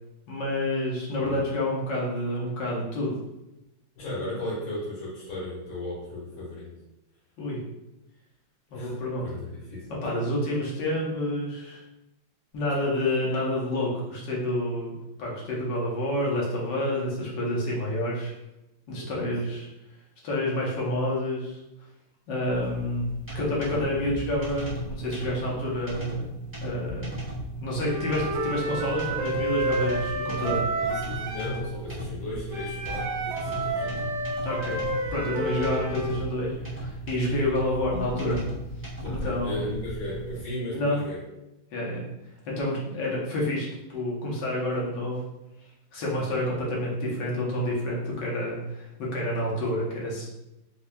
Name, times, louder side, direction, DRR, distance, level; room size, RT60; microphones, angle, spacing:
voice 1, 0.3-3.1 7.4-7.6 8.7-9.2 10.0-11.8 12.5-18.3 18.9-19.7 20.2-21.6 22.3-23.1 23.3-26.3 26.6-27.2 27.6-30.6 33.8-34.0 34.4-34.8 35.1-38.4 39.1-39.6 40.7-41.0 41.7-42.0 42.5-45.2 45.9-50.3, left 1 dB, 70° left, -5 dB, 1.6 m, -29 dB
voice 2, 3.9-6.7 8.7-9.9 19.0-19.3 23.7-24.1 30.8-34.0 39.0-41.2, left 1 dB, 85° left, -8 dB, 2.3 m, -36 dB
sound 1, 22.5-40.4, right 1 dB, 10° right, 0.8 m, -36 dB
Wind instrument woodwind instrument, 27.8-31.7 32.5-36.2, right 2 dB, 80° right, 1.5 m, -30 dB
4.7 x 2.7 x 2.2 m, 0.93 s
omnidirectional pair, 2.1 m